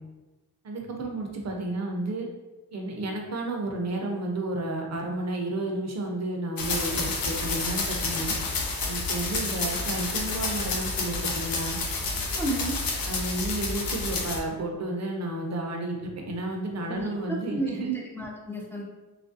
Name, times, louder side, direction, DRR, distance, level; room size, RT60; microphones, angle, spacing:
voice 1, 0.6-2.3 2.7-8.3 8.8-11.8 13.1-17.9, right 2 dB, 45° right, 1 dB, 0.6 m, -32 dB
sound 1, 6.6-14.4, left 3 dB, 65° left, 0.6 m, -29 dB
voice 2, 12.3-12.8 16.9-18.8, right 2 dB, 5° left, -3 dB, 0.5 m, -32 dB
2.9 x 2.5 x 2.6 m, 1.1 s
cardioid pair, 95°, 37 cm